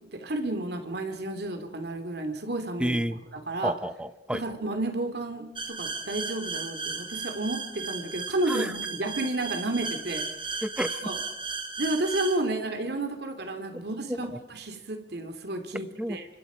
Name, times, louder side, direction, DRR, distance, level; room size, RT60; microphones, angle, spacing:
voice 1, 0.1-3.0 3.5-3.7 4.3-10.2 11.0-11.2 11.8-16.3, right 2 dB, 65° right, 6 dB, 2.6 m, -31 dB
voice 2, 2.8-3.2 3.6-4.4 8.5-8.7 10.6-11.0 14.1-14.4 15.7-16.2, right 1 dB, 5° right, 13 dB, 0.7 m, -30 dB
sound 1, 5.6-12.4, right 4 dB, 30° right, 2.7 m, -35 dB
29.0 x 25.5 x 5.1 m, 1.1 s
head